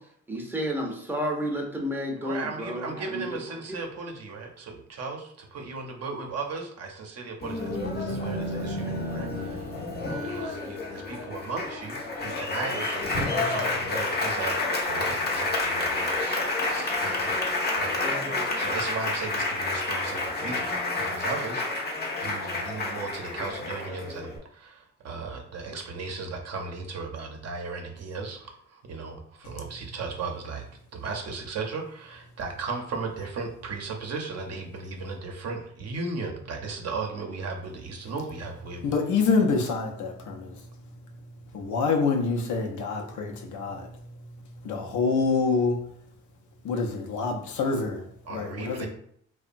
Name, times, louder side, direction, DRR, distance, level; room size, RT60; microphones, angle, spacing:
voice 1, 0.3-3.4 3.7-3.8 8.8-8.9, equal, 5° right, 0 dB, 0.6 m, -31 dB
voice 2, 2.2-5.3 5.5-8.9 9.1-9.7 10.2-14.5 14.8-16.4 16.7-17.3 17.7-30.6 30.9-38.9 48.2-48.9, right 4 dB, 55° right, 3 dB, 0.6 m, -36 dB
Applause, 7.4-24.4, left 2 dB, 35° left, 0.6 m, -29 dB
voice 3, 38.8-40.6 41.5-43.9 44.6-45.8 46.6-48.9, left 4 dB, 75° left, 3 dB, 0.6 m, -26 dB
2.8 x 2.1 x 2.5 m, 0.65 s
cardioid pair, 90°, 30 cm